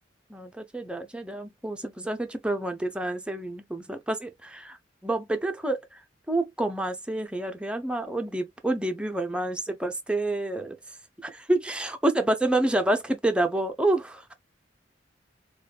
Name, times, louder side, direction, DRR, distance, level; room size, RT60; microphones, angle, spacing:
voice 1, 0.3-4.8 5.0-6.0 6.3-10.8 11.2-14.3, right 1 dB, 5° right, 0.5 m, -28 dB
5.0 x 2.2 x 2.3 m
head